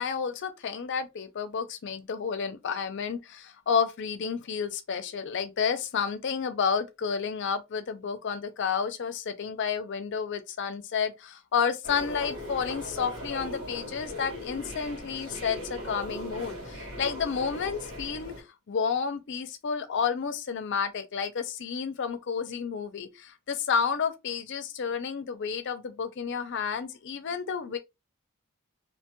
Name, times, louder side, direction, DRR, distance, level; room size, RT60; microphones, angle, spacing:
voice 1, 0.0-18.4 18.7-27.8, left 6 dB, 55° left, 0.5 m, -31 dB
sound 1, 11.8-18.4, equal, 80° right, 1.5 m, -39 dB
2.8 x 2.2 x 2.9 m
head